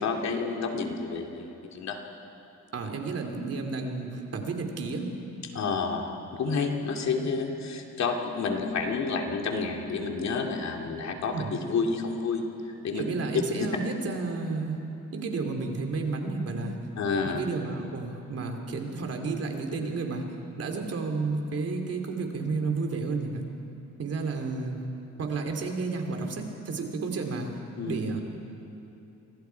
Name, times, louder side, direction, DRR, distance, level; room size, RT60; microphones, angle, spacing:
voice 1, 0.0-2.0 5.5-12.4 12.8-13.0 17.0-17.4 27.8-28.0, left 4 dB, 65° left, 2 dB, 2.7 m, -30 dB
voice 2, 2.7-5.1 11.3-11.6 13.0-14.8 15.1-16.8 17.2-20.3 20.6-23.4 24.0-24.8 25.2-27.5 27.9-28.2, right 4 dB, 55° right, 3 dB, 3.1 m, -31 dB
28.5 x 25.0 x 4.7 m, 2.9 s
cardioid pair, 90°, 30 cm